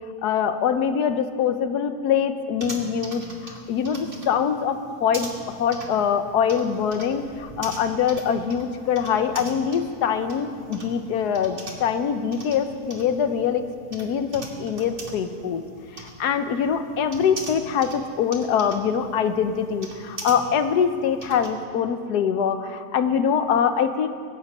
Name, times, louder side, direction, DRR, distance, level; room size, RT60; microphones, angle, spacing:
voice 1, 0.2-15.6 16.0-24.1, left 7 dB, 85° left, 9 dB, 1.4 m, -24 dB
sound 1, 2.6-21.5, right 1 dB, 35° right, 1.8 m, -41 dB
23.5 x 8.1 x 5.4 m, 2.1 s
omnidirectional pair, 1.7 m